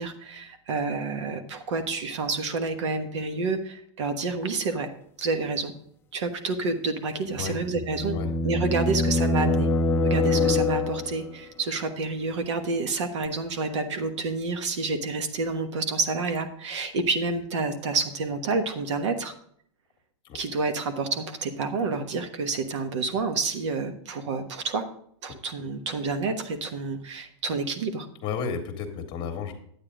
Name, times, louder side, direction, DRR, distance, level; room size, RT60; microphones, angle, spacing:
voice 1, 0.0-4.9 5.2-5.7 6.1-8.2 8.4-9.7 10.0-19.3 20.3-24.9 25.2-28.1, right 3 dB, 75° right, 7 dB, 1.3 m, -29 dB
sound 1, 7.3-11.3, left 2 dB, 15° left, 0.6 m, -25 dB
voice 2, 28.2-29.5, left 6 dB, 30° left, 5 dB, 1.5 m, -32 dB
10.0 x 8.7 x 3.8 m, 0.65 s
supercardioid pair, 145°, 15 cm